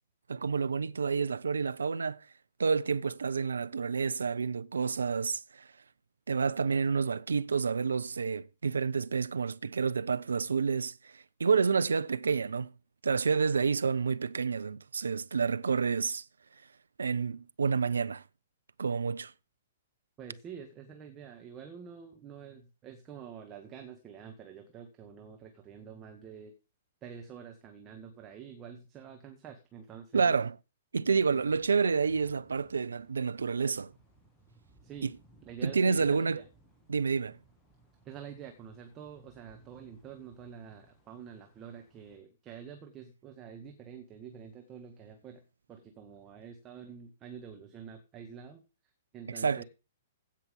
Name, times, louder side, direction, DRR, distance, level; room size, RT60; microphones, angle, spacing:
voice 1, 0.3-2.2 2.6-5.7 6.3-12.7 13.0-16.2 17.0-18.2 18.8-19.3 30.1-30.5 30.9-33.9 35.0-35.1 35.6-36.4 36.9-37.4 49.3-49.6, right 5 dB, 70° right, 0.5 m, -29 dB
voice 2, 20.2-26.5 27.0-30.4 31.3-31.5 34.8-35.1 35.5-36.5 38.0-45.4 45.7-48.6 49.1-49.6, right 7 dB, 20° right, 1.8 m, -47 dB
sound 1, 31.0-42.2, right 2 dB, 5° left, 2.5 m, -63 dB
16.0 x 5.9 x 5.3 m
figure-of-eight pair, 115°, 0 cm